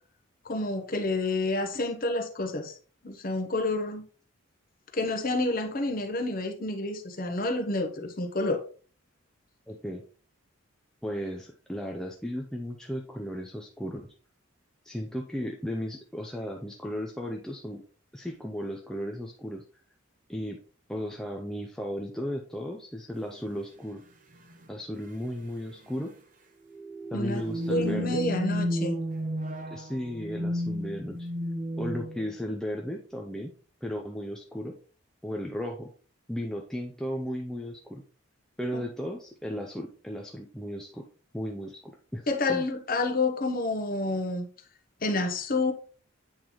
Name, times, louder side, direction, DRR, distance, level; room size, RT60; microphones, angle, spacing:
voice 1, 0.4-2.7 3.0-4.0 4.9-8.6 27.1-27.4 27.7-29.0 38.7-38.8 42.3-44.5 45.0-45.7, left 2 dB, 40° left, 0.9 m, -29 dB
voice 2, 9.7-10.0 11.0-14.1 14.8-17.8 18.1-19.6 20.3-20.6 20.9-24.0 24.7-26.1 27.1-28.2 29.7-31.3 31.8-33.5 33.8-34.8 35.2-35.9 36.3-38.0 38.6-41.0 41.3-42.7, equal, 5° left, 0.4 m, -35 dB
sound 1, 23.3-23.4 24.4-24.7 24.9-25.0 25.5-25.7 26.7-32.4, equal, 40° right, 0.8 m, -32 dB
8.6 x 3.9 x 3.0 m
head